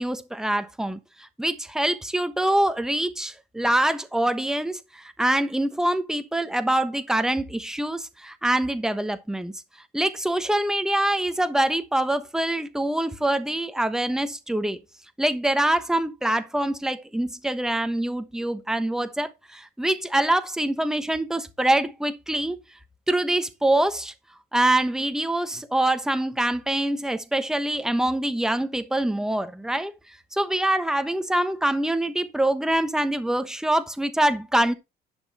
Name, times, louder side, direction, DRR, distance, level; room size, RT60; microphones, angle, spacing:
voice 1, 0.0-9.5 9.9-14.8 15.2-22.6 23.1-24.1 24.5-34.7, right 1 dB, 5° right, 1.1 m, -25 dB
11.0 x 6.1 x 4.3 m
cardioid pair, 110°, 17 cm